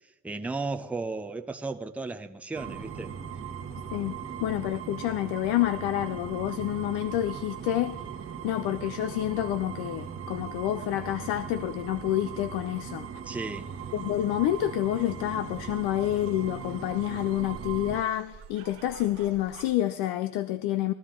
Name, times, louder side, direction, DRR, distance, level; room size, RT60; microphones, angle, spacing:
voice 1, 0.2-3.1 13.3-13.7, right 3 dB, 5° right, 0.6 m, -34 dB
sound 1, 2.5-18.0, right 7 dB, 30° right, 1.3 m, -39 dB
voice 2, 3.9-8.0 8.4-13.1 13.9-20.9, left 13 dB, 65° left, 0.6 m, -28 dB
sound 2, 13.4-19.8, right 5 dB, 55° right, 1.0 m, -51 dB
15.0 x 13.0 x 3.7 m
supercardioid pair, 90°, 42 cm